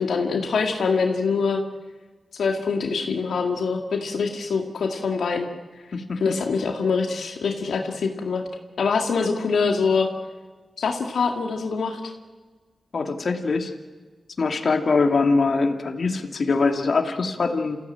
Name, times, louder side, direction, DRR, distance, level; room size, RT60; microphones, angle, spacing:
voice 1, 0.0-1.6 2.3-5.5 6.2-8.4 8.8-10.1 10.8-12.1, left 5 dB, 85° left, 3 dB, 2.1 m, -24 dB
voice 2, 5.9-6.3 12.9-13.7 14.4-17.8, left 4 dB, 65° left, 5 dB, 2.4 m, -23 dB
28.0 x 16.0 x 8.9 m, 1.4 s
cardioid pair, 55°, 0 cm